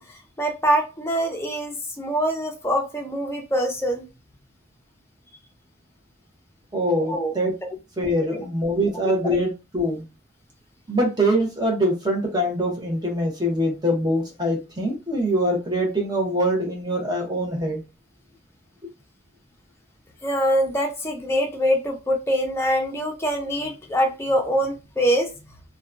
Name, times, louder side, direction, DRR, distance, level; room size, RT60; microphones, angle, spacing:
voice 1, 0.0-4.0 7.1-7.3 8.3-8.5 9.0-9.4 20.2-25.3, equal, 15° left, 2 dB, 0.5 m, -24 dB
voice 2, 6.7-7.5 8.0-10.0 10.9-17.8, equal, 20° right, 0 dB, 0.8 m, -23 dB
2.7 x 2.2 x 2.4 m, 0.28 s
head